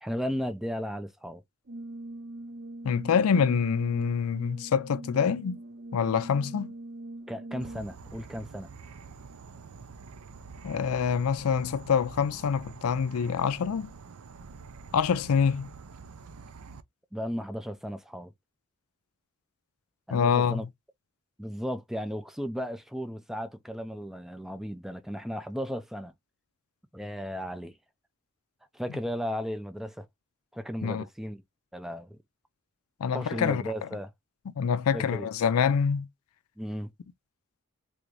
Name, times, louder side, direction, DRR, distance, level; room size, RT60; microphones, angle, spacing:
voice 1, 0.0-1.4 7.3-8.7 17.1-18.3 20.1-20.7 21.4-26.1 26.9-27.8 28.7-30.1 30.5-31.4 31.7-32.2 33.1-34.1 34.9-35.3 36.6-36.9, equal, ahead, 0.4 m, -35 dB
Brass instrument, 1.7-8.1, right 2 dB, 45° right, 0.7 m, -42 dB
voice 2, 2.8-5.6 5.9-6.7 10.6-13.9 14.9-15.7 20.1-20.6 30.8-31.0 33.0-33.6 34.6-36.1, left 6 dB, 75° left, 0.4 m, -26 dB
Insect / Frog, 7.6-16.8, right 4 dB, 80° right, 0.5 m, -47 dB
3.4 x 2.6 x 3.1 m
head